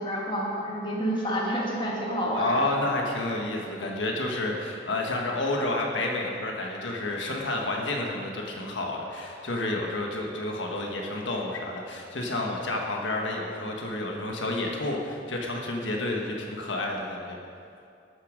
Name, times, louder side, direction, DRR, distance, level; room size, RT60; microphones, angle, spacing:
voice 1, 0.0-2.7, equal, 25° left, -3 dB, 2.1 m, -29 dB
voice 2, 2.3-17.4, left 2 dB, 85° left, 0 dB, 1.4 m, -30 dB
12.5 x 9.8 x 5.1 m, 2.5 s
head